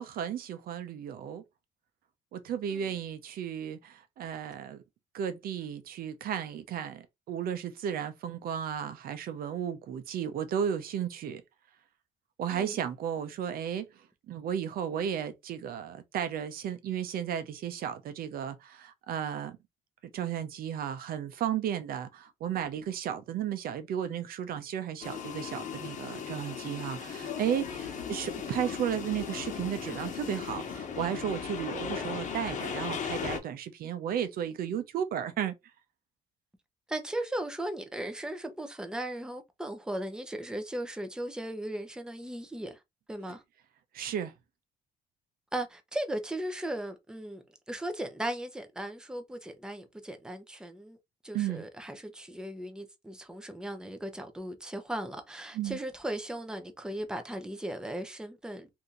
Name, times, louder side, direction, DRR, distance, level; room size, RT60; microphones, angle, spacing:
voice 1, 0.0-1.4 2.3-4.8 5.1-11.4 12.4-19.6 20.1-35.5 43.9-44.3 51.3-51.6 55.5-55.8, right 9 dB, 60° right, 0.6 m, -34 dB
sound 1, 25.0-33.4, left 7 dB, 45° left, 1.1 m, -37 dB
voice 2, 36.9-42.8 43.1-43.4 45.5-51.0 51.2-58.7, right 1 dB, 5° right, 0.7 m, -37 dB
2.8 x 2.7 x 3.7 m
cardioid pair, 110°, 17 cm